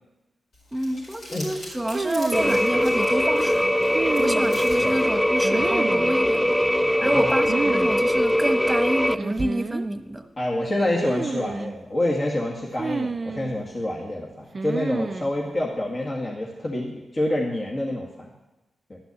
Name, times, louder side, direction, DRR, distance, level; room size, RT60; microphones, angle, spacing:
Crumpling crinkling, 0.5-5.6, left 1 dB, 75° left, 4.8 m, -43 dB
voice 1, 0.7-3.7 4.2-6.6 7.0-10.2, right 1 dB, 15° right, 7 dB, 1.2 m, -28 dB
sound 1, 1.9-2.6 3.9-4.8 5.4-6.2 7.4-7.9 8.2-8.3 9.2-9.9 11.0-11.8 12.8-13.6 14.5-15.3, right 4 dB, 45° right, 0.4 m, -29 dB
sound 2, 2.3-9.1, equal, 10° left, 0.5 m, -21 dB
voice 2, 7.0-7.5 10.4-18.3 18.9-19.0, left 1 dB, 40° left, -2 dB, 1.9 m, -27 dB
12.0 x 6.0 x 8.4 m, 1.1 s
cardioid pair, 50°, 0 cm